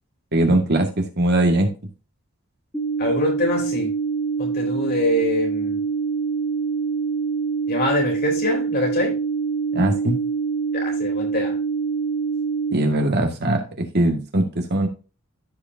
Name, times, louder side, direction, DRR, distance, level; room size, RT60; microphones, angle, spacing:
voice 1, 0.3-1.7 9.7-10.2 12.7-14.9, right 1 dB, 50° right, 3 dB, 2.0 m, -20 dB
sound 1, 2.7-12.7, right 5 dB, 10° left, 1.1 m, -25 dB
voice 2, 3.0-3.9 4.4-5.8 7.7-9.1 10.7-11.6, left 1 dB, 50° left, 0 dB, 3.9 m, -24 dB
14.5 x 5.0 x 2.8 m, 0.32 s
head